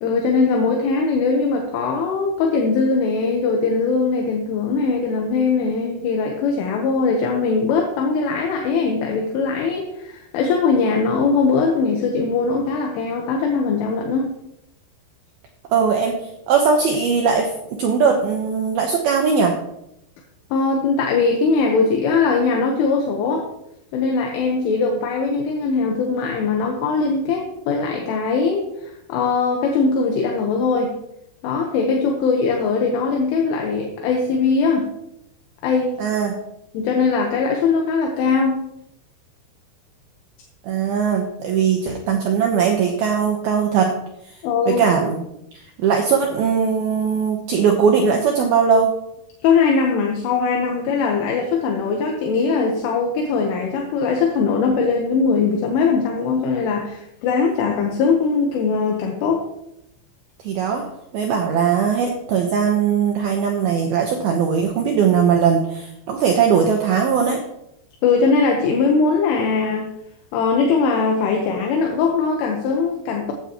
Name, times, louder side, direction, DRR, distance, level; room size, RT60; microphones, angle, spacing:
voice 1, 0.0-14.3 20.5-23.5 23.9-30.9 31.4-34.9 35.6-36.0 36.7-38.6 44.4-44.8 49.4-59.5 68.0-69.9 70.3-73.3, left 4 dB, 75° left, 1 dB, 3.6 m, -20 dB
voice 2, 15.7-19.6 36.0-36.4 40.6-44.0 44.7-45.2 45.5-48.9 60.4-60.8 61.1-67.4, right 6 dB, 80° right, 1 dB, 2.2 m, -19 dB
15.0 x 9.7 x 3.0 m, 0.80 s
omnidirectional pair, 5.9 m